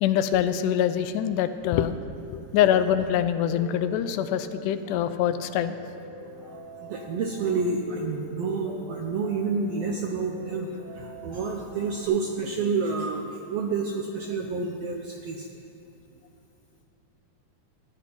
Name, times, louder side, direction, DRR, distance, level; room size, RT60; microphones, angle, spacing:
voice 1, 0.0-2.0 2.3-5.8, left 10 dB, 85° left, 11 dB, 2.1 m, -24 dB
Piano, 3.3-12.1, equal, 55° left, 3.9 m, -44 dB
voice 2, 6.4-15.5, right 4 dB, 75° right, 2 dB, 1.5 m, -29 dB
14.5 x 10.0 x 4.4 m, 2.9 s
omnidirectional pair, 3.7 m